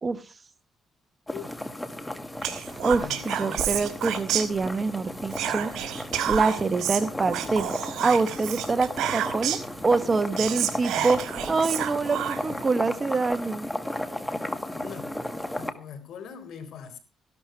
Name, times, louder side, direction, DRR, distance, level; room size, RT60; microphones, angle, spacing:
voice 1, 1.3-1.8 3.0-3.6 14.7-15.2 15.5-17.0, left 7 dB, 70° left, 3.6 m, -42 dB
sound 1, 1.3-15.7, left 1 dB, 10° left, 1.8 m, -35 dB
Whispering, 2.4-4.9 5.3-9.7 10.1-10.2 10.4-12.6, right 10 dB, 80° right, 2.9 m, -30 dB
voice 2, 2.8-5.7 6.3-7.7 8.0-13.7, right 4 dB, 30° right, 1.3 m, -25 dB
14.5 x 12.0 x 4.6 m
cardioid pair, 90°, 0 cm